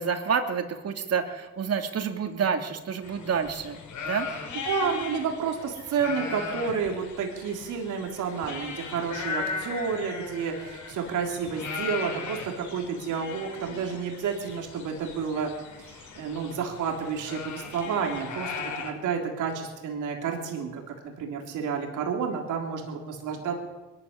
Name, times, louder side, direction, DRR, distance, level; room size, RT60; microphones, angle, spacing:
voice 1, 0.0-4.3, right 6 dB, 55° right, 5 dB, 3.0 m, -28 dB
sound 1, 3.0-18.9, left 5 dB, 75° left, 5.3 m, -38 dB
voice 2, 4.6-15.5 15.8-23.6, right 6 dB, 85° right, 2 dB, 3.6 m, -30 dB
22.0 x 14.0 x 9.9 m, 1.2 s
cardioid pair, 90°, 30 cm